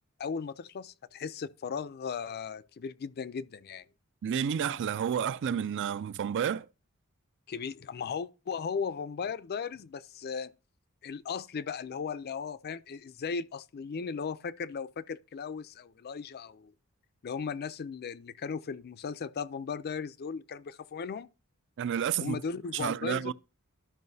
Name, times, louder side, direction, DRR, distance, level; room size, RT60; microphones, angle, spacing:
voice 1, 0.2-3.8 7.5-10.5 11.0-16.7 17.2-21.3 22.2-23.3, left 6 dB, 45° left, 0.4 m, -37 dB
voice 2, 4.2-6.7 21.8-22.4 22.7-23.3, right 8 dB, 55° right, 0.4 m, -30 dB
12.5 x 5.5 x 2.7 m
head